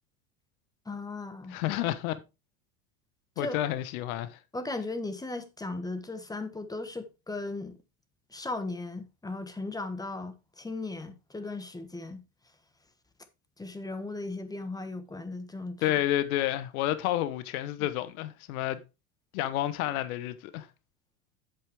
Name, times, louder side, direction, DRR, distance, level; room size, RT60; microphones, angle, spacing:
voice 1, 0.8-1.6 3.4-3.6 4.5-7.8 8.3-12.2 13.6-16.0 17.8-17.9, left 2 dB, 10° left, 1.3 m, -37 dB
voice 2, 1.5-2.1 3.4-4.4 15.8-18.8 19.3-20.7, left 13 dB, 75° left, 1.1 m, -30 dB
8.2 x 7.8 x 3.5 m
supercardioid pair, 115°, 43 cm